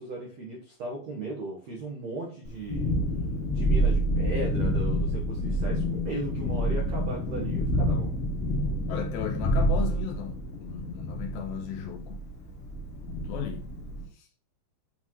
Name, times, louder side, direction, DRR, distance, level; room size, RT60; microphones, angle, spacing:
voice 1, 0.0-2.9 3.5-8.2, right 2 dB, 75° right, 1.5 m, -37 dB
Thunderstorm, 2.4-14.0, equal, 60° left, 1.4 m, -28 dB
voice 2, 8.9-12.3 13.3-13.7 14.1-14.3, left 9 dB, 80° left, 2.5 m, -36 dB
8.5 x 4.0 x 4.7 m
omnidirectional pair, 5.5 m